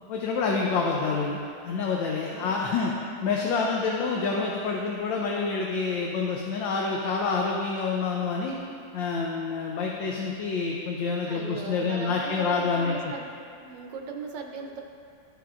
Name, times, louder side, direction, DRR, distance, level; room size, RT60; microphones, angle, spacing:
voice 1, 0.1-1.4 1.6-2.9 3.2-8.6 8.9-13.0, left 4 dB, 70° left, -1 dB, 1.3 m, -27 dB
voice 2, 2.3-2.7 11.3-13.3 13.6-14.8, right 4 dB, 70° right, 2 dB, 1.4 m, -38 dB
13.0 x 5.9 x 2.4 m, 2.5 s
omnidirectional pair, 2.2 m